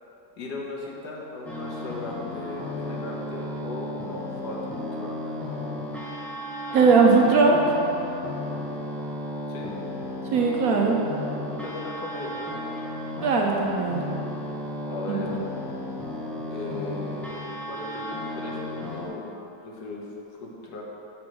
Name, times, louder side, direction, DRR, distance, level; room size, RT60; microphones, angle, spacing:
voice 1, 0.4-4.6 4.9-5.4 9.5-9.8 11.5-12.5 14.9-15.4 16.5-17.4 17.7-19.4 19.6-20.8, left 3 dB, 70° left, -2 dB, 1.5 m, -37 dB
sound 1, 1.4-19.1, left 1 dB, ahead, 0.3 m, -34 dB
voice 2, 6.7-7.8 10.3-11.0 13.2-14.0 15.1-15.2, right 4 dB, 65° right, 0 dB, 1.1 m, -19 dB
6.2 x 4.3 x 6.1 m, 2.9 s
omnidirectional pair, 1.8 m